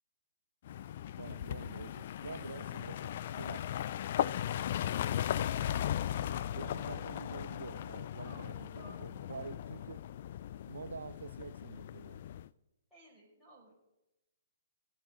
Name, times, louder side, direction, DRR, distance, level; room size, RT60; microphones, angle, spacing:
sound 1, 0.6-12.5, left 11 dB, 50° left, 0.3 m, -37 dB
voice 1, 1.2-3.7 6.6-10.0 10.6-12.2, right 5 dB, 75° right, 15 dB, 0.4 m, -47 dB
voice 2, 5.5-7.0 8.2-9.3 12.9-13.7, right 1 dB, ahead, -6 dB, 5.2 m, -57 dB
18.0 x 8.3 x 3.7 m, 0.94 s
figure-of-eight pair, 125°, 0 cm